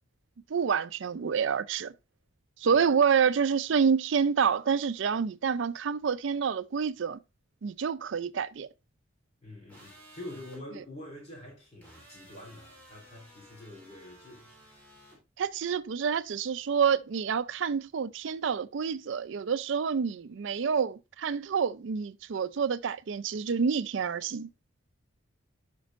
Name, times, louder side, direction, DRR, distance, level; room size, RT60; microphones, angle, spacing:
voice 1, 0.5-1.9 2.6-7.2 7.6-8.7 15.4-24.5, right 6 dB, 60° right, 0.4 m, -28 dB
voice 2, 9.4-14.5, left 1 dB, 30° left, 3.5 m, -46 dB
sound 1, 9.7-10.6 11.8-15.2, right 1 dB, 10° left, 4.0 m, -55 dB
11.5 x 5.2 x 2.5 m
head